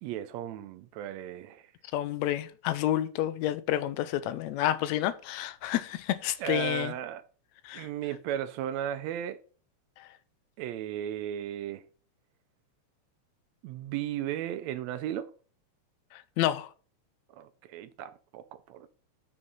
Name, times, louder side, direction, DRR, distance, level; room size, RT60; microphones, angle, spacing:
voice 1, 0.0-1.7 6.4-7.2 7.7-9.4 10.6-11.8 13.6-15.3 17.3-18.9, right 11 dB, 80° right, 1.7 m, -35 dB
voice 2, 1.9-6.9 7.6-7.9 10.0-10.1 16.1-16.7, left 13 dB, 80° left, 1.8 m, -29 dB
6.3 x 5.8 x 5.3 m
omnidirectional pair, 3.3 m